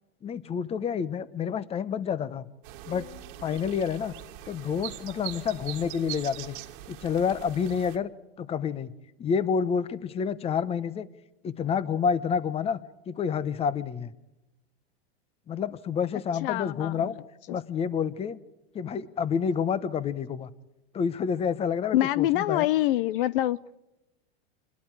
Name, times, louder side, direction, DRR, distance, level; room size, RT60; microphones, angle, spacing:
voice 1, 0.2-2.4 2.9-3.1 3.4-4.1 4.5-6.6 6.9-8.1 8.4-8.9 9.2-11.1 11.4-12.8 13.1-14.1 15.5-17.2 17.5-18.4 18.7-20.5 20.9-22.7, left 7 dB, 20° left, 0.9 m, -28 dB
sound 1, 2.6-8.0, right 15 dB, 55° right, 1.7 m, -42 dB
voice 2, 16.4-17.1 17.5-17.6 21.9-23.8, left 14 dB, 60° left, 0.6 m, -26 dB
27.0 x 21.5 x 4.7 m
supercardioid pair, 140°, 31 cm